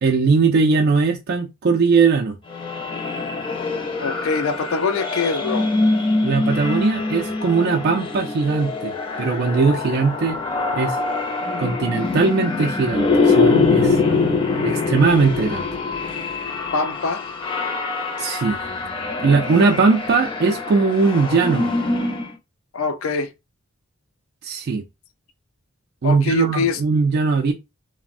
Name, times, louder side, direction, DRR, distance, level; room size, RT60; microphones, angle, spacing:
voice 1, 0.0-2.4 6.2-8.9 9.2-10.4 10.7-11.0 11.6-14.0 14.6-15.7 18.2-18.6 19.2-21.7 24.4-24.8 26.0-27.5, right 4 dB, 45° right, 0.3 m, -19 dB
sound 1, 2.5-22.3, left 3 dB, 25° left, 0.5 m, -23 dB
voice 2, 4.0-5.7 16.7-17.2 22.7-23.3 26.0-26.8, left 4 dB, 70° left, 0.4 m, -23 dB
3.3 x 2.0 x 2.4 m
head